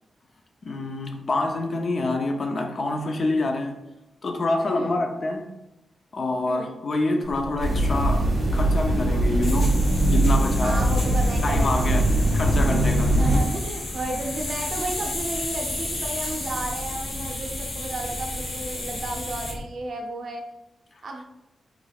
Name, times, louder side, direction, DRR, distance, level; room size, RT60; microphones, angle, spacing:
voice 1, 0.6-3.7 4.2-5.5 6.1-8.2 8.5-9.8 10.1-11.0 11.4-12.0 12.3-13.2, left 2 dB, 40° left, 4 dB, 0.4 m, -26 dB
voice 2, 4.7-5.0 6.5-6.7 10.6-12.0 13.1-20.4 21.0-21.2, right 2 dB, 55° right, 2 dB, 0.6 m, -33 dB
sound 1, 7.2-19.6, left 2 dB, 75° left, 1.1 m, -34 dB
sound 2, 7.6-13.4, right 1 dB, 25° right, 1.3 m, -21 dB
sound 3, 9.8-19.6, equal, 5° right, 0.7 m, -38 dB
3.6 x 3.3 x 2.3 m, 0.90 s
wide cardioid pair, 155°, 0 cm